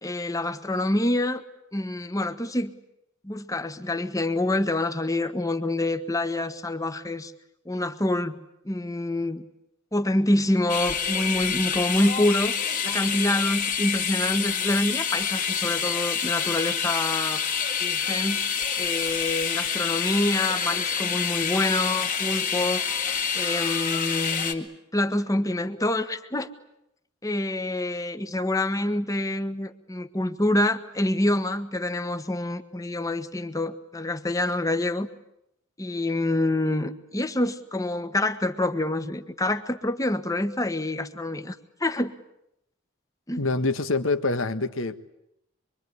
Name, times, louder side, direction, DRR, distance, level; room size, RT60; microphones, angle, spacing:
voice 1, 0.0-1.4 1.7-2.7 3.2-7.3 7.6-8.4 8.6-9.4 9.9-12.5 12.8-17.4 17.8-22.9 23.3-26.5 27.2-35.1 35.8-42.1 43.3-43.4, left 1 dB, 15° left, 10 dB, 1.4 m, -26 dB
sound 1, 10.7-24.5, left 7 dB, 40° left, 2.6 m, -27 dB
voice 2, 43.4-45.0, left 3 dB, 75° left, 10 dB, 1.7 m, -25 dB
25.0 x 24.5 x 9.8 m, 0.81 s
head